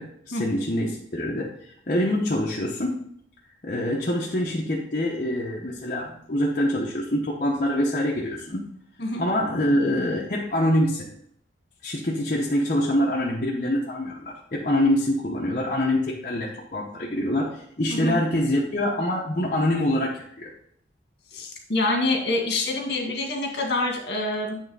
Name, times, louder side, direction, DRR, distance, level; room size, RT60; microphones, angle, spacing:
voice 1, 0.0-3.0 3.6-8.7 9.2-11.1 11.8-20.5, left 1 dB, 45° left, -3 dB, 0.9 m, -25 dB
voice 2, 17.9-18.2 21.3-24.6, left 2 dB, 60° left, 1 dB, 1.8 m, -26 dB
8.8 x 3.4 x 5.4 m, 0.68 s
head